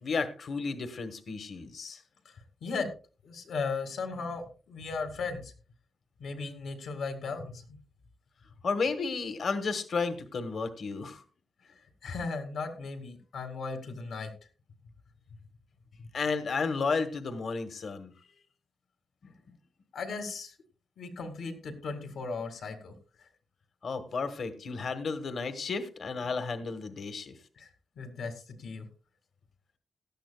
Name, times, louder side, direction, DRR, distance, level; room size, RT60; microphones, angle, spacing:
voice 1, 0.0-2.0 8.6-11.2 16.1-18.1 19.2-19.3 23.8-27.3, left 4 dB, 60° left, 10 dB, 1.2 m, -32 dB
voice 2, 2.3-2.9 3.2-5.5 6.2-7.8 11.6-14.3 16.0-16.1 19.9-20.5 21.0-23.3 27.6-28.9, left 4 dB, 85° left, 6 dB, 2.0 m, -37 dB
17.0 x 12.5 x 2.3 m, 0.36 s
wide cardioid pair, 135°, 0 cm